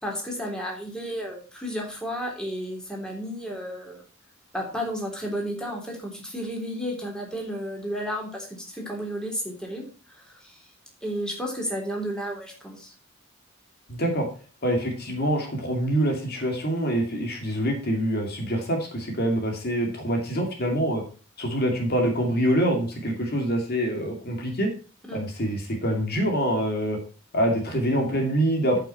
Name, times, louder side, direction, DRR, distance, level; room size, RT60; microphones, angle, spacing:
voice 1, 0.0-4.0 4.5-10.6 11.0-12.9 25.0-25.3, equal, 5° left, -1 dB, 3.4 m, -32 dB
voice 2, 13.9-14.3 14.6-21.0 21.4-24.7 25.1-27.0 27.3-28.8, equal, 50° left, 2 dB, 2.3 m, -25 dB
13.0 x 5.9 x 4.3 m, 0.37 s
head